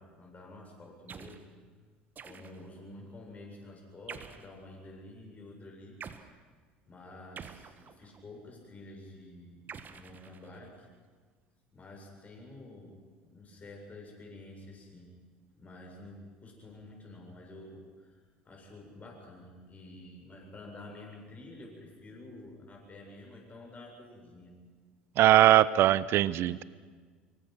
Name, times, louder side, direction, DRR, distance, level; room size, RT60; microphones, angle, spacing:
voice 1, 0.0-1.5 2.2-6.4 6.9-10.9 11.7-13.0 13.3-15.1 15.5-24.5, left 2 dB, 30° left, 0 dB, 7.4 m, -49 dB
sound 1, 1.1-1.5 2.2-2.8 4.1-4.6 6.0-6.3 7.4-8.2 9.7-10.8, right 6 dB, 35° right, 1.5 m, -47 dB
voice 2, 25.2-26.6, right 13 dB, 50° right, 19 dB, 0.8 m, -21 dB
25.0 x 23.0 x 6.1 m, 1.5 s
figure-of-eight pair, 65°, 5 cm